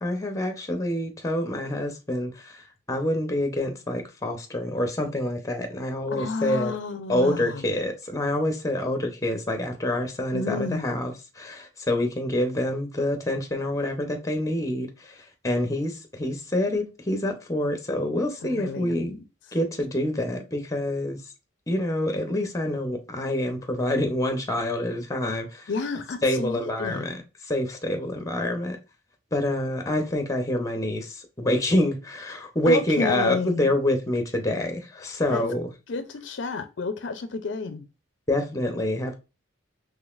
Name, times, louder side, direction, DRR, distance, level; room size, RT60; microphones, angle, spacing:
voice 1, 0.0-6.7 7.1-15.1 15.4-19.2 19.5-21.2 21.7-25.7 26.2-27.2 27.5-28.8 29.3-35.7 38.3-39.1, left 1 dB, 15° left, 0.8 m, -27 dB
voice 2, 6.1-7.7 10.3-11.1 18.4-19.2 25.7-27.3 32.6-33.7 35.3-35.5 35.9-37.9, left 4 dB, 60° left, 0.5 m, -31 dB
3.9 x 3.2 x 2.4 m
head